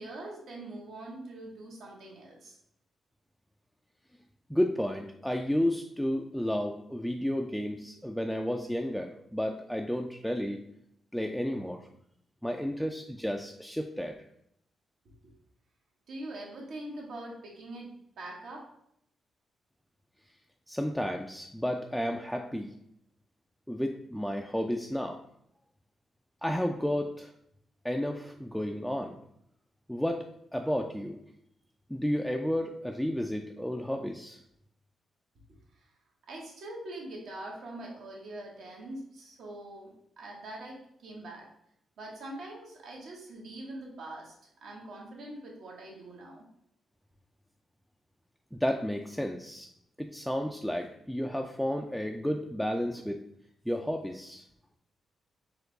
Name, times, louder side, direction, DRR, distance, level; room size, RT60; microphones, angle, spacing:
voice 1, 0.0-2.6 15.2-15.3 16.1-18.7 35.7-35.9 36.3-41.5 42.0-44.3 44.6-46.4, right 1 dB, 80° right, -2 dB, 1.2 m, -43 dB
voice 2, 4.5-10.6 11.1-11.9 12.4-14.2 20.7-22.7 23.7-25.2 26.4-27.3 27.8-29.2 29.9-30.3 30.5-31.2 31.9-34.4 48.5-49.7 50.0-53.2 53.7-54.4, equal, ahead, 2 dB, 0.3 m, -32 dB
4.4 x 2.3 x 3.8 m, 0.73 s
cardioid pair, 80°, 0 cm